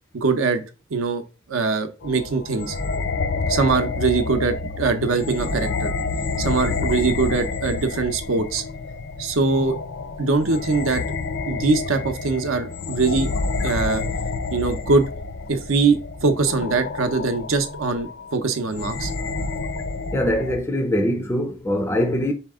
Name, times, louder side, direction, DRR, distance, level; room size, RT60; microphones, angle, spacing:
voice 1, 0.1-0.6 0.9-1.2 1.5-2.8 3.5-5.9 6.4-8.6 9.2-9.7 10.2-11.0 11.5-13.3 13.6-14.0 14.5-15.1 15.5-19.1, right 4 dB, 80° right, 0.7 m, -22 dB
sound 1, 2.0-20.6, left 3 dB, 65° left, 0.6 m, -29 dB
voice 2, 20.1-22.3, left 1 dB, 10° left, 0.4 m, -22 dB
4.3 x 2.9 x 3.5 m
head